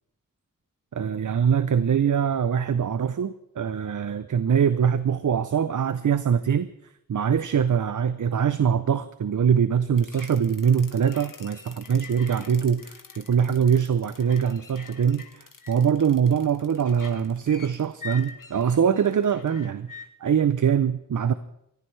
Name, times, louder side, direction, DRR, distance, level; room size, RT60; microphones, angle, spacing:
voice 1, 0.9-6.7 7.1-21.3, right 7 dB, 70° right, 13 dB, 0.6 m, -23 dB
sound 1, 10.0-20.1, left 5 dB, 75° left, 1.4 m, -45 dB
24.0 x 14.5 x 3.2 m, 0.80 s
wide cardioid pair, 60°, 32 cm